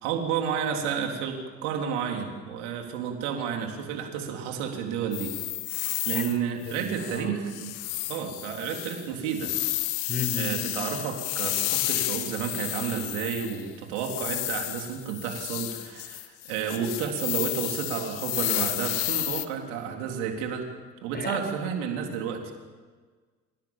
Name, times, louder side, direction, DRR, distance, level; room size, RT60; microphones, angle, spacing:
voice 1, 0.0-5.3 6.1-7.7 8.1-9.5 10.3-20.7 21.0-22.5, right 7 dB, 85° right, 3 dB, 3.7 m, -31 dB
sound 1, 5.1-6.4 6.6-7.2 7.5-13.6 14.0-19.5, left 17 dB, 85° left, 1.2 m, -31 dB
voice 2, 6.6-7.3 10.1-10.7 21.1-21.4, left 4 dB, 30° left, 9 dB, 4.4 m, -33 dB
29.5 x 17.5 x 7.4 m, 1.4 s
hypercardioid pair, 65°, 34 cm